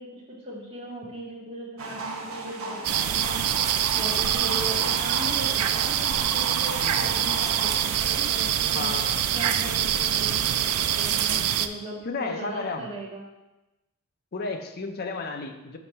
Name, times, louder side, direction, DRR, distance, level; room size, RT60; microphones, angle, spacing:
voice 1, 0.0-8.9 9.3-13.3, equal, 25° right, -5 dB, 1.4 m, -39 dB
sound 1, 1.8-7.8, right 3 dB, 65° right, 0.8 m, -35 dB
sound 2, 2.8-11.7, right 10 dB, 90° right, 0.3 m, -25 dB
voice 2, 8.7-9.3 12.0-12.9 14.3-15.8, left 3 dB, 45° left, 5 dB, 0.5 m, -33 dB
6.2 x 3.2 x 5.5 m, 1.0 s
head